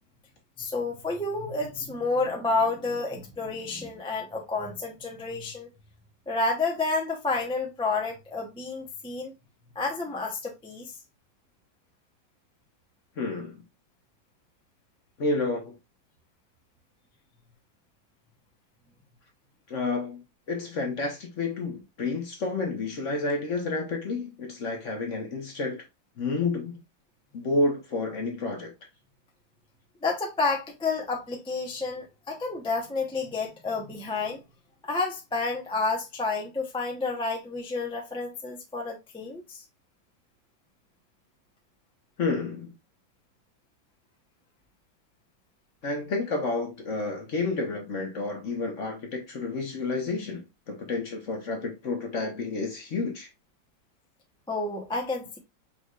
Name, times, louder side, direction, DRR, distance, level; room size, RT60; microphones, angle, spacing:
voice 1, 0.6-5.7 6.3-9.3 9.7-10.9 30.0-34.4 34.8-39.6 54.5-55.4, left 3 dB, 5° left, 0.4 m, -30 dB
voice 2, 13.2-13.6 15.2-15.8 19.7-20.2 20.5-25.8 26.2-26.8 27.3-28.7 42.2-42.7 45.8-53.3, left 3 dB, 50° left, 1.1 m, -30 dB
5.3 x 3.3 x 2.4 m
omnidirectional pair, 2.1 m